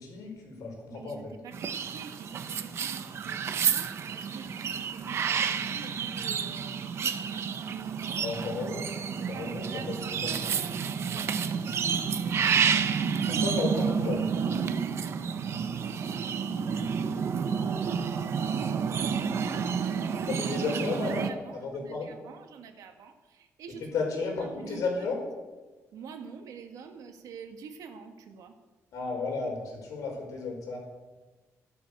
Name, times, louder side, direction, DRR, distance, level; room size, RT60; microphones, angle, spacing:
voice 1, 0.0-1.3 8.2-8.8 9.3-9.8 10.2-10.4 13.3-14.3 20.1-22.1 23.8-25.2 28.9-30.8, left 4 dB, 80° left, 1 dB, 5.0 m, -33 dB
voice 2, 0.9-8.3 8.6-8.8 9.1-12.3 15.1-17.4 18.7-20.3 20.9-23.8 24.4-25.1 25.9-28.5, right 6 dB, 80° right, 6 dB, 1.8 m, -47 dB
sound 1, 1.5-21.3, right 6 dB, 50° right, 0.9 m, -30 dB
14.0 x 11.5 x 6.7 m, 1.2 s
cardioid pair, 165°, 6 cm